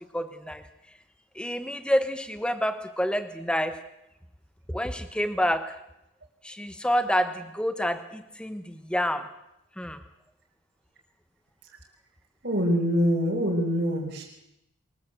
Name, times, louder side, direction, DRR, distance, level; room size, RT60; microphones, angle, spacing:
voice 1, 0.1-0.6 1.3-3.8 4.7-5.8 6.4-9.3 9.8-10.0, equal, 5° left, 10 dB, 1.0 m, -28 dB
voice 2, 12.4-14.2, equal, 50° right, -1 dB, 5.0 m, -24 dB
23.5 x 14.0 x 8.0 m, 0.83 s
head